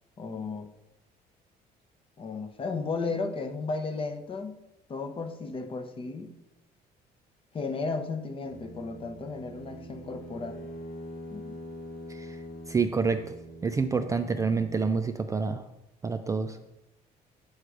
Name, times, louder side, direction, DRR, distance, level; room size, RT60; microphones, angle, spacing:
voice 1, 0.2-0.7 2.2-4.6 4.9-6.4 7.5-10.6 11.3-11.6, left 4 dB, 30° left, 8 dB, 0.7 m, -34 dB
sound 1, 8.4-14.9, equal, 80° left, 1.8 m, -44 dB
voice 2, 12.7-13.2 13.6-15.6 16.0-16.6, right 5 dB, 20° right, 7 dB, 0.3 m, -27 dB
7.9 x 3.3 x 4.9 m, 0.90 s
cardioid pair, 110°, 17 cm